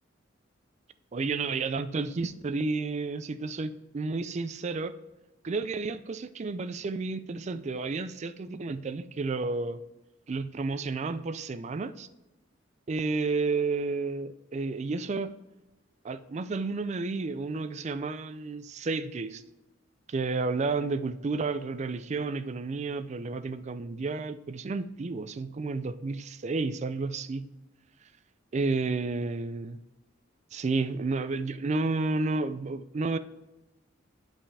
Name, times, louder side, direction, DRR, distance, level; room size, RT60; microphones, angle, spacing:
voice 1, 1.1-4.9 5.4-9.8 10.3-12.1 12.9-15.3 16.0-19.4 20.1-27.5 28.5-29.8 30.5-33.2, right 3 dB, 35° right, 13 dB, 0.4 m, -31 dB
8.8 x 5.6 x 3.4 m, 1.0 s
head